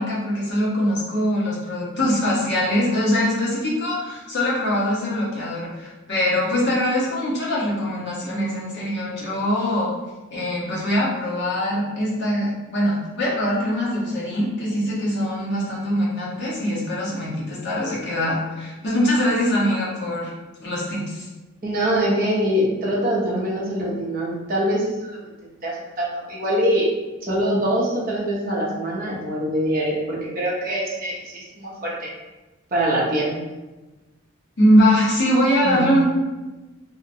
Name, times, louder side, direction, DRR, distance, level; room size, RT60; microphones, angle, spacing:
voice 1, 0.0-9.9 10.3-20.3 20.6-21.2 34.6-36.0, equal, 50° left, -6 dB, 0.7 m, -22 dB
voice 2, 21.6-25.2 25.6-26.9 27.2-32.1 32.7-33.3 35.6-35.9, equal, 40° right, -4 dB, 0.6 m, -24 dB
2.7 x 2.1 x 2.6 m, 1.1 s
head